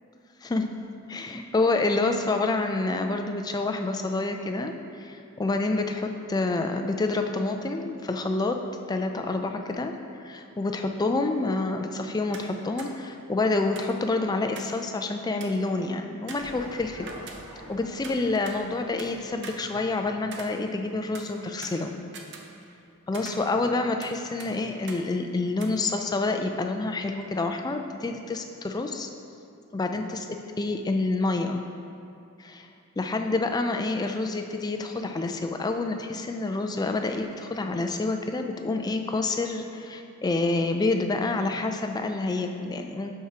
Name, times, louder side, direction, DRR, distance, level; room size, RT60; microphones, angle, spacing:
voice 1, 0.4-0.7 1.1-8.6 8.9-9.9 10.2-17.1 17.7-21.9 23.1-29.1 29.7-30.3 30.6-31.7 32.4-32.7 33.0-43.1, left 3 dB, 20° left, 5 dB, 0.3 m, -28 dB
sound 1, 12.3-12.5 12.8-12.9 13.8-14.8 15.1-15.2 15.4-15.7 16.3-17.7 18.0-19.1 19.4-20.9 21.1-22.9 23.1-24.1 24.4-24.5 24.9-25.0 25.6-25.7, right 4 dB, 55° right, 0.7 m, -43 dB
sound 2, 16.4-20.2 20.5-20.6, right 1 dB, 75° right, 1.6 m, -47 dB
11.5 x 4.7 x 2.9 m, 2.6 s
head